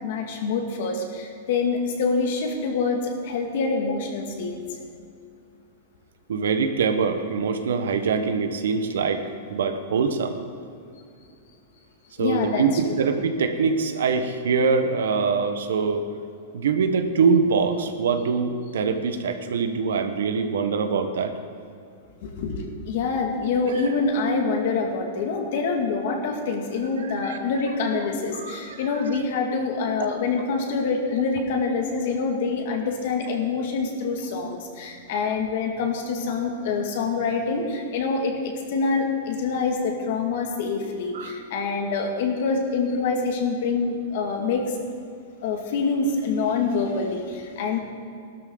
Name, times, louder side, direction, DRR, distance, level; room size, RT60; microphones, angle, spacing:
voice 1, 0.0-4.8 12.2-13.0 22.2-44.8 45.4-47.8, left 4 dB, 60° left, 2 dB, 2.2 m, -26 dB
voice 2, 6.3-9.2 9.5-10.4 12.2-16.0 16.5-21.3 27.1-27.4 28.3-28.8 41.1-41.4, right 5 dB, 90° right, 8 dB, 1.3 m, -23 dB
16.5 x 12.5 x 4.0 m, 2.5 s
supercardioid pair, 155°, 0 cm